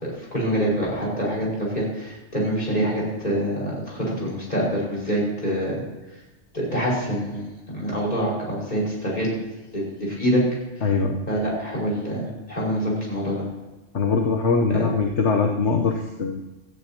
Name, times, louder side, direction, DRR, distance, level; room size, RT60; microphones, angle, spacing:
voice 1, 0.0-5.8 6.5-9.3 9.7-10.4 10.8-10.9 11.3-13.4 14.7-14.9, equal, 40° left, -4 dB, 5.6 m, -25 dB
voice 2, 10.8-11.3 13.9-16.4, left 4 dB, 75° left, 2 dB, 1.3 m, -22 dB
17.0 x 14.5 x 2.9 m, 1.2 s
omnidirectional pair, 1.2 m